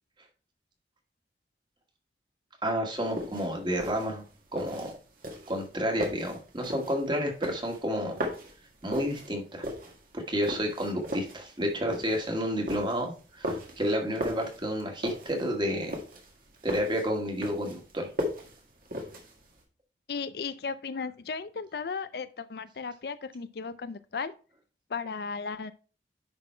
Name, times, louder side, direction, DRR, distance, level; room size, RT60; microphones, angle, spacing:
voice 1, 2.6-4.2 4.5-4.9 5.5-8.2 8.8-9.7 10.1-16.0 16.6-18.1, equal, 25° right, 2 dB, 1.8 m, -30 dB
sound 1, 3.0-19.6, equal, 50° right, 1.9 m, -38 dB
voice 2, 20.1-24.3 24.9-25.7, left 5 dB, 60° left, 13 dB, 0.4 m, -35 dB
10.5 x 4.1 x 4.4 m, 0.37 s
head